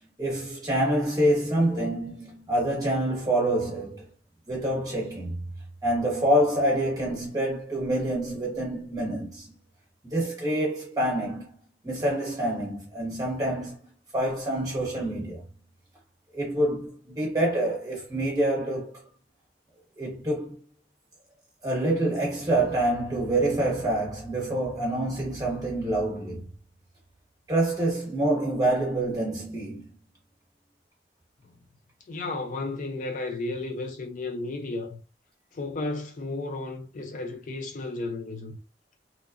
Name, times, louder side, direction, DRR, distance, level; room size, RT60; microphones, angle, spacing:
voice 1, 0.2-4.1 4.5-5.4 5.8-9.5 10.1-11.5 11.8-13.8 14.1-15.4 16.3-19.1 20.0-20.6 21.6-26.5 27.5-29.9, right 1 dB, 20° right, 1.1 m, -26 dB
voice 2, 32.1-35.0 35.5-38.6, left 2 dB, 45° left, 0.4 m, -33 dB
2.8 x 2.1 x 2.4 m
head